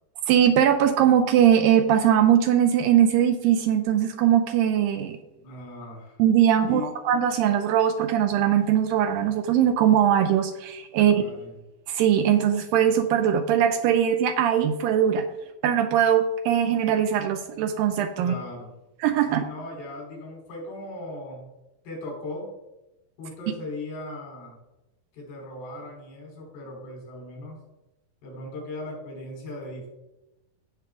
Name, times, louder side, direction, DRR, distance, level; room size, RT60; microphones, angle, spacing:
voice 1, 0.3-5.2 6.2-11.2 11.9-15.3 15.6-18.3 19.0-19.5, right 9 dB, 80° right, 8 dB, 2.1 m, -21 dB
voice 2, 5.4-6.2 6.6-6.9 11.1-11.6 18.2-18.7 19.3-21.4 21.9-22.5 23.2-24.6 25.1-27.6 28.2-29.9, left 2 dB, 80° left, -1 dB, 5.3 m, -38 dB
16.0 x 5.9 x 3.6 m, 0.96 s
omnidirectional pair, 4.4 m